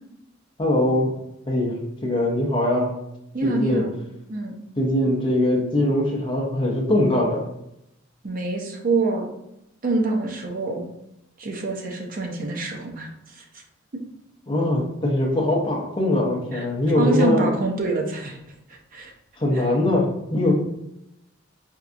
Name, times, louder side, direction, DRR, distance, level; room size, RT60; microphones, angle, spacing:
voice 1, 0.6-1.1 1.5-1.7 2.0-2.9 3.4-3.8 4.8-7.5 14.5-17.5 19.4-20.5, left 1 dB, 25° left, -2 dB, 0.6 m, -21 dB
voice 2, 3.3-3.9 4.3-4.6 8.2-9.3 9.8-10.8 11.4-13.6 13.9-14.0 16.5-16.6 17.0-18.4 18.9-19.1 19.5-19.7, right 2 dB, 45° right, 2 dB, 0.6 m, -26 dB
4.3 x 2.3 x 2.5 m, 0.82 s
head